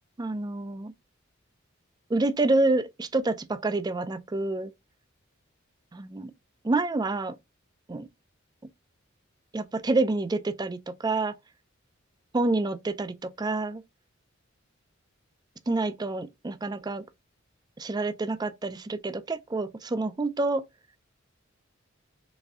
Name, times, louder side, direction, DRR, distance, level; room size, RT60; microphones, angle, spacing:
voice 1, 0.2-0.9 2.1-4.7 5.9-6.3 6.6-7.4 7.9-8.1 9.5-11.3 12.3-13.8 15.7-17.0 17.8-20.6, right 2 dB, 20° right, 0.4 m, -28 dB
4.1 x 3.4 x 3.5 m
head